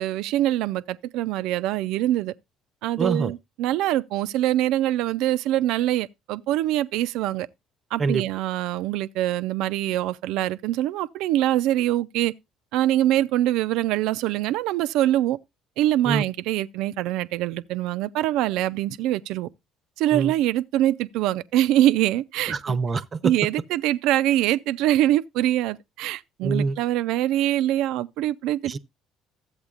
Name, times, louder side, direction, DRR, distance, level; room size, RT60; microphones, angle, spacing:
voice 1, 0.0-2.3 2.8-7.5 7.9-12.3 12.7-15.4 15.8-19.5 20.0-22.8 23.2-28.8, right 13 dB, 75° right, 0.4 m, -24 dB
voice 2, 3.0-3.3 8.0-8.2 16.1-16.2 20.1-20.3 22.5-23.3 26.4-26.8 28.6-28.8, right 4 dB, 40° right, 0.7 m, -25 dB
13.5 x 8.0 x 2.4 m
supercardioid pair, 70°, 0 cm